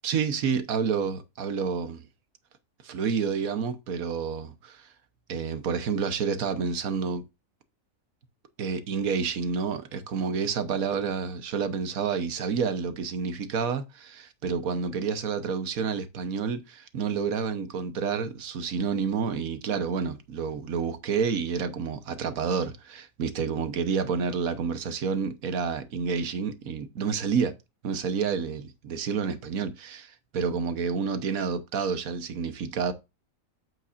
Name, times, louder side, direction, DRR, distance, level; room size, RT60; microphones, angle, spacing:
voice 1, 0.0-2.0 2.8-4.9 5.3-7.2 8.6-27.5 27.8-32.9, right 6 dB, 75° right, 1.5 m, -29 dB
8.4 x 7.6 x 2.5 m
omnidirectional pair, 1.5 m